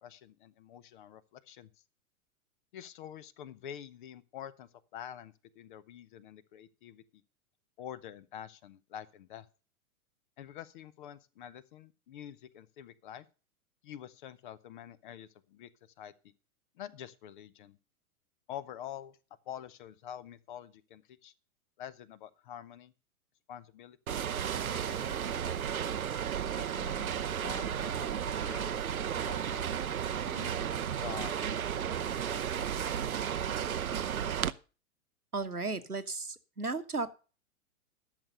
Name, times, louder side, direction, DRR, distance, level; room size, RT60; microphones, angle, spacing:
voice 1, 0.0-1.7 2.7-7.0 7.8-9.5 10.4-13.3 13.8-15.7 16.0-16.3 16.8-17.8 18.5-19.2 19.5-21.3 21.8-22.9 23.5-24.2 24.6-25.2 25.4-26.0 26.5-29.7 30.2-31.8 32.2-32.5, left 10 dB, 35° left, 19 dB, 0.7 m, -47 dB
sound 1, 24.1-34.5, right 8 dB, 75° right, 0.7 m, -33 dB
voice 2, 35.3-37.1, right 3 dB, 90° right, 8 dB, 1.2 m, -35 dB
12.0 x 6.7 x 6.6 m, 0.35 s
figure-of-eight pair, 105°, 44 cm